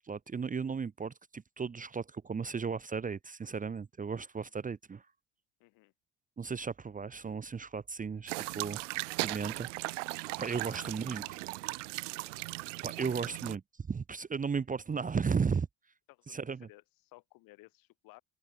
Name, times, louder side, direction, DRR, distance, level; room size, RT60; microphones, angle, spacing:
voice 1, 0.0-5.0 6.4-8.8 9.2-9.7 10.4-11.2 12.8-15.7 16.3-16.7, right 5 dB, 20° right, 1.0 m, -35 dB
voice 2, 5.6-5.9 10.2-10.4 10.7-11.4 13.2-13.3 16.1-18.2, left 21 dB, 65° left, 7.6 m, -58 dB
sound 1, 8.3-13.6, right 23 dB, 75° right, 0.9 m, -38 dB
hypercardioid pair, 65°, 37 cm